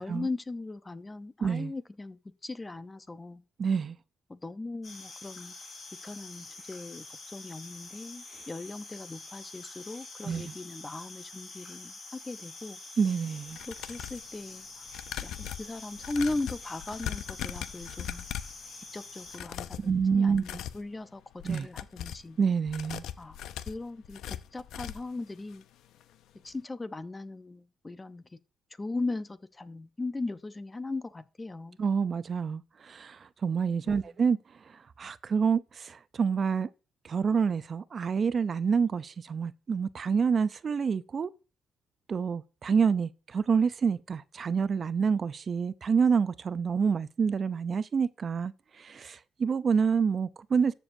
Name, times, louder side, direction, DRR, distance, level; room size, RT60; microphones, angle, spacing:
voice 1, 0.0-3.4 4.3-5.5 6.0-12.8 13.7-14.8 15.2-18.3 18.9-22.4 23.2-23.4 23.7-25.6 26.4-28.2 28.8-31.8 33.8-34.1, left 2 dB, 20° left, 0.7 m, -38 dB
voice 2, 1.4-1.7 3.6-4.0 10.2-10.5 13.0-13.6 19.8-20.4 21.4-21.7 22.4-23.0 31.8-34.4 34.7-36.7 37.0-41.3 42.1-50.7, right 6 dB, 45° right, 0.5 m, -27 dB
sound 1, 4.8-19.4, left 3 dB, 45° left, 3.8 m, -46 dB
sound 2, 13.5-14.3 14.9-18.6 19.3-19.9 20.3-20.8 21.3-22.3 22.7-25.2 25.5-25.6 26.0-26.1, left 11 dB, 80° left, 0.6 m, -39 dB
13.5 x 6.9 x 2.7 m
cardioid pair, 90°, 0 cm